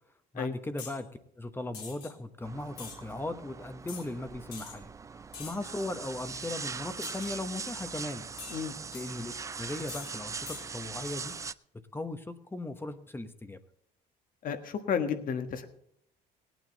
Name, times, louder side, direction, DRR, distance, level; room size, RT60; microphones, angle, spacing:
voice 1, 0.3-1.1 1.4-8.2 8.9-11.3 11.9-13.6, left 2 dB, 15° left, 9 dB, 1.0 m, -38 dB
sound 1, 0.8-1.0 1.7-2.1 2.7-3.0 3.9-4.1 4.5-4.8 5.3-5.7 7.0-7.4 8.4-9.0 9.9-10.1 10.4-10.7, left 6 dB, 80° left, 3.4 m, -44 dB
sound 2, 2.4-11.5, right 5 dB, 20° right, 0.4 m, -41 dB
voice 2, 14.4-15.6, left 7 dB, 55° left, 8 dB, 1.5 m, -32 dB
18.0 x 9.2 x 4.0 m, 0.71 s
cardioid pair, 110°, 17 cm